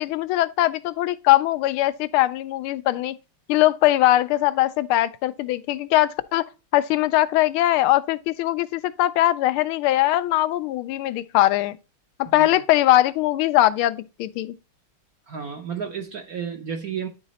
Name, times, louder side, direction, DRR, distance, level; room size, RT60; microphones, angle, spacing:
voice 1, 0.0-3.1 3.5-6.4 6.7-11.8 12.2-14.5, left 15 dB, 80° left, 1.4 m, -21 dB
voice 2, 12.2-12.6 15.3-17.1, right 7 dB, 60° right, 1.0 m, -32 dB
10.5 x 3.9 x 4.0 m
omnidirectional pair, 2.4 m